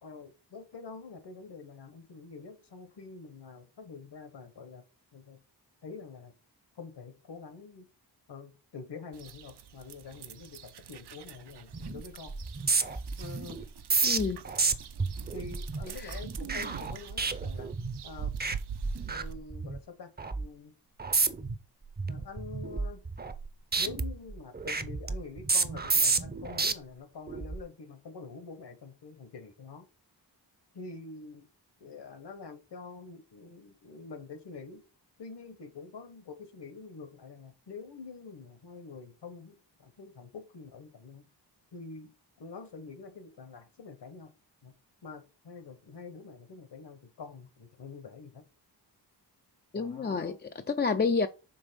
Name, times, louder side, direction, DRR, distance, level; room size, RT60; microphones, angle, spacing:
voice 1, 0.0-4.8 5.1-5.4 5.8-6.3 6.7-7.9 8.3-12.3 13.2-13.7 15.3-17.7 18.0-18.6 19.1-20.7 22.1-23.0 23.8-29.9 30.7-31.5 31.8-34.8 35.2-41.3 41.7-44.3 44.6-44.7 45.0-48.4 49.7-50.4, left 4 dB, 65° left, 1.3 m, -46 dB
sound 1, 9.1-19.3, right 7 dB, 65° right, 0.7 m, -44 dB
sound 2, 11.7-12.0 12.3-18.0 18.3-18.6 18.8-19.8 20.2-20.5 21.0-21.6 22.0-23.5 23.7-26.7 27.3-27.6, right 4 dB, 20° right, 0.6 m, -31 dB
voice 2, 14.0-14.4 16.0-16.2 49.7-51.3, left 4 dB, 25° left, 0.4 m, -29 dB
5.4 x 3.5 x 5.1 m
cardioid pair, 75°, 43 cm